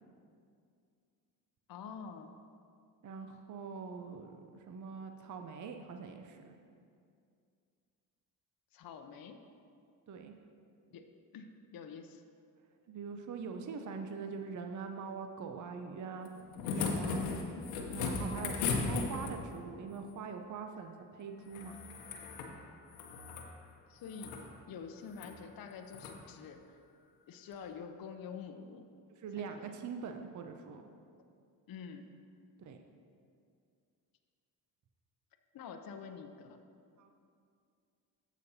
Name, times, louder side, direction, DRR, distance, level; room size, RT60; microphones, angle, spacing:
voice 1, 1.7-2.3 8.7-9.4 10.9-11.1 11.3-12.2 23.9-24.4 24.7-26.8 27.3-28.8 29.4-29.7 31.7-32.1 35.5-36.6, left 6 dB, 45° left, 5 dB, 0.7 m, -47 dB
voice 2, 3.0-4.4 4.7-6.5 10.1-10.3 12.9-16.3 16.7-17.3 17.9-21.8 29.2-30.8 32.6-32.8 37.0-37.1, right 5 dB, 35° right, 5 dB, 0.7 m, -43 dB
sound 1, 16.2-19.6 21.5-22.5 22.9-23.5 24.0-24.4 25.1-25.3 25.9-26.2 27.5-27.6, left 4 dB, 85° left, 1.0 m, -36 dB
14.5 x 5.2 x 2.8 m, 2.4 s
hypercardioid pair, 55°, 50 cm